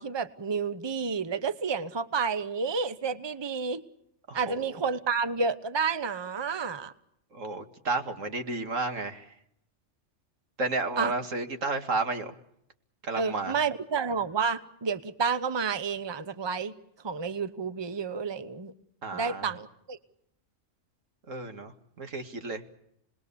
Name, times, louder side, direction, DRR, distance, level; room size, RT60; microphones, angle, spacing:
voice 1, 0.0-3.8 4.3-6.9 11.0-11.1 13.2-16.7 17.0-18.7 19.1-20.0, right 5 dB, 25° right, 12 dB, 0.9 m, -30 dB
voice 2, 4.3-4.6 7.3-9.3 10.6-12.3 13.0-13.6 19.0-19.5 21.3-22.6, right 3 dB, 85° right, 6 dB, 2.4 m, -32 dB
29.0 x 21.0 x 7.0 m, 0.75 s
omnidirectional pair, 1.3 m